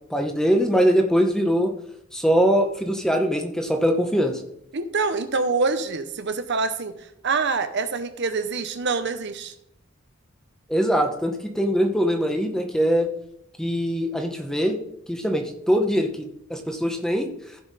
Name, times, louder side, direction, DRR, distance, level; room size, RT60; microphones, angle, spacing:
voice 1, 0.1-1.7 2.1-4.4 10.7-13.1 13.6-14.8 15.1-17.3, equal, 5° left, 4 dB, 0.9 m, -22 dB
voice 2, 4.7-9.5, right 4 dB, 55° right, 9 dB, 0.8 m, -26 dB
15.0 x 5.6 x 4.1 m, 0.75 s
head